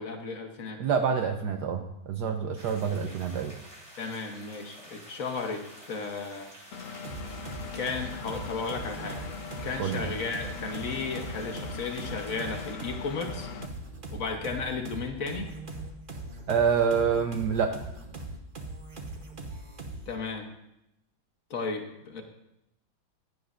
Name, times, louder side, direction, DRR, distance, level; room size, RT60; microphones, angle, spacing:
voice 1, 0.0-0.8 4.0-6.5 7.7-9.2 9.6-13.5 14.1-15.5 20.1-20.5 21.5-22.2, left 4 dB, 50° left, 4 dB, 1.2 m, -34 dB
voice 2, 0.8-3.5 9.8-10.1 16.5-17.7, right 6 dB, 65° right, 5 dB, 1.1 m, -27 dB
sound 1, 2.5-12.7, equal, 15° right, 3.3 m, -50 dB
Engine, 6.7-13.7, left 5 dB, 70° left, 0.7 m, -41 dB
sound 2, 7.0-20.2, right 2 dB, 40° right, 0.7 m, -41 dB
15.5 x 9.3 x 2.5 m, 0.83 s
omnidirectional pair, 2.2 m